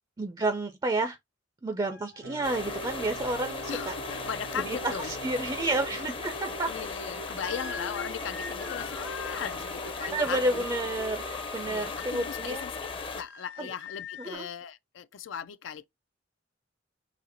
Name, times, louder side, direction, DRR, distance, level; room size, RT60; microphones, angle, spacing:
voice 1, 0.2-1.2 1.6-3.9 4.7-6.7 10.1-12.6 13.6-13.7 14.3-14.5, right 2 dB, 20° right, 0.4 m, -30 dB
sound 1, 1.9-6.2 7.4-14.3, left 4 dB, 65° left, 0.8 m, -46 dB
sound 2, 2.2-11.5, right 2 dB, 90° right, 0.7 m, -44 dB
sound 3, 2.4-13.2, left 4 dB, 30° left, 0.5 m, -37 dB
voice 2, 3.7-5.2 6.7-10.6 11.7-12.7 13.1-15.8, left 7 dB, 85° left, 0.4 m, -38 dB
4.2 x 2.8 x 3.9 m
head